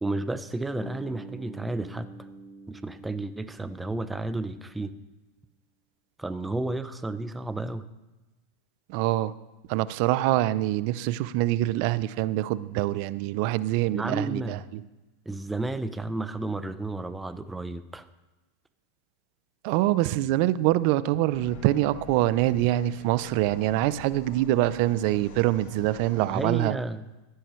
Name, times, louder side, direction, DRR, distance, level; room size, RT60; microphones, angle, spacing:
voice 1, 0.0-2.1 2.7-4.9 6.2-7.8 13.9-14.6 15.3-18.0 26.2-27.1, right 2 dB, 10° right, 11 dB, 0.7 m, -32 dB
Bass guitar, 0.8-4.9, right 1 dB, 15° left, 1.7 m, -46 dB
voice 2, 8.9-9.3 9.7-14.8 19.6-26.7, right 15 dB, 60° right, 17 dB, 0.5 m, -25 dB
sound 1, 21.3-26.4, left 3 dB, 65° left, 2.3 m, -46 dB
15.5 x 9.9 x 3.2 m, 1.1 s
hypercardioid pair, 105°, 0 cm